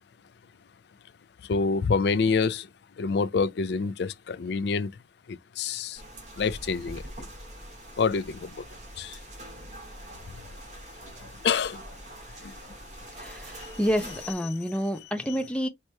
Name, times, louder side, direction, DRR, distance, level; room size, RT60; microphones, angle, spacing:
voice 1, 1.5-2.7 3.0-4.9 5.3-6.0 6.4-7.0 8.0-8.6 9.0-9.2 11.4-11.8 12.4-12.5, left 5 dB, 60° left, 0.4 m, -27 dB
sound 1, 5.9-14.3, right 1 dB, 40° right, 2.0 m, -44 dB
voice 2, 13.2-15.7, equal, 5° left, 0.6 m, -29 dB
4.6 x 2.9 x 3.3 m
head